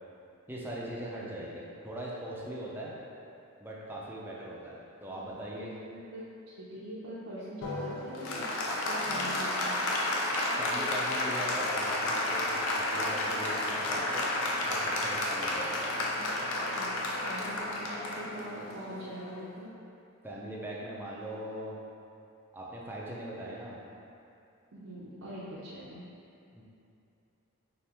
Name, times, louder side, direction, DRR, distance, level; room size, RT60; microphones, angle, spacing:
voice 1, 0.5-2.9 3.6-5.7 10.6-14.3 14.7-15.8 20.2-21.8 22.5-23.8 26.5-26.6, right 1 dB, 10° right, -5 dB, 0.5 m, -40 dB
voice 2, 5.2-8.5 8.8-9.8 16.2-19.7 24.7-26.1, right 1 dB, 70° right, -10 dB, 0.6 m, -43 dB
Applause, 7.6-19.5, left 1 dB, 70° left, 0.5 m, -31 dB
4.0 x 2.9 x 3.4 m, 2.7 s
head